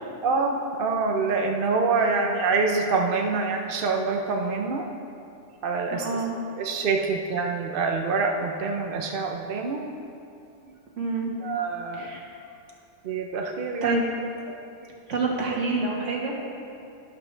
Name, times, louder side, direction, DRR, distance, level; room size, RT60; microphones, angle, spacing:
voice 1, 0.2-4.9 5.6-6.2 6.5-9.9 11.4-12.1 13.0-14.0, right 4 dB, 50° right, 3 dB, 0.8 m, -26 dB
voice 2, 5.9-6.4 11.0-11.3 12.0-12.2 13.8-14.0 15.1-16.4, right 3 dB, 75° right, -1 dB, 1.8 m, -27 dB
12.0 x 11.5 x 3.3 m, 2.7 s
omnidirectional pair, 1.3 m